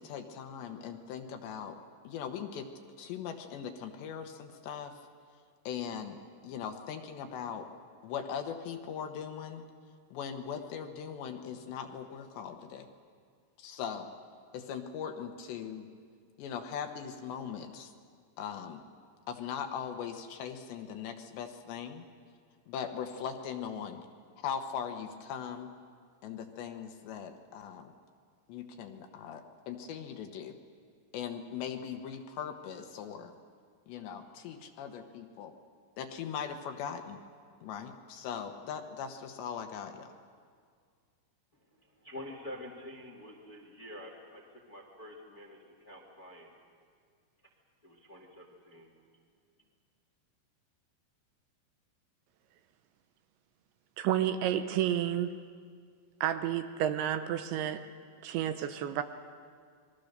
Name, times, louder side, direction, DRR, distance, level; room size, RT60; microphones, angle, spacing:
voice 1, 0.0-1.8 2.0-2.7 3.0-5.0 5.6-7.7 8.0-9.6 10.1-12.9 13.6-14.1 14.5-15.9 16.4-17.9 18.4-18.8 19.3-22.1 22.7-24.0 24.4-25.7 26.2-27.9 28.5-30.5 31.1-33.3 33.9-35.5 36.0-37.2 37.6-40.1, left 7 dB, 70° left, 6 dB, 3.1 m, -40 dB
voice 2, 42.0-44.4 44.7-46.5 47.8-48.9, left 1 dB, 40° left, 1 dB, 1.2 m, -47 dB
voice 3, 54.0-55.3 56.2-57.8 58.2-59.0, right 11 dB, 80° right, 9 dB, 2.9 m, -30 dB
29.5 x 22.0 x 6.6 m, 2.1 s
omnidirectional pair, 5.6 m